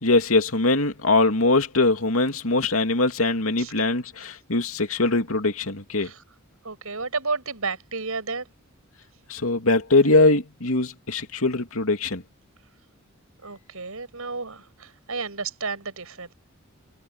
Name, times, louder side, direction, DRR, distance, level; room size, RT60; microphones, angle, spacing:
voice 1, 0.0-6.1 9.3-12.2, left 2 dB, 75° left, 2.8 m, -22 dB
voice 2, 6.6-8.5 13.4-16.3, right 4 dB, 90° right, 6.4 m, -32 dB
head